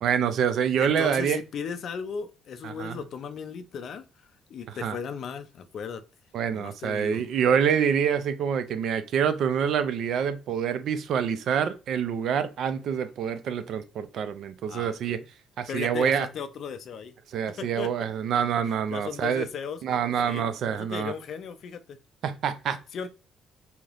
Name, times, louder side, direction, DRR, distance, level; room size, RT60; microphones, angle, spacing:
voice 1, 0.0-1.4 2.6-3.0 4.8-5.0 6.3-15.2 15.6-16.3 17.3-19.5 19.8-21.1 22.2-22.8, right 8 dB, 55° right, 0.4 m, -26 dB
voice 2, 0.8-4.0 4.5-6.0 6.5-7.2 14.7-15.3 15.7-17.1 17.6-17.9 18.9-19.8 20.2-20.4 20.7-22.0 22.9-23.1, left 6 dB, 45° left, 0.4 m, -36 dB
3.2 x 2.7 x 2.4 m
cardioid pair, 170°, 0 cm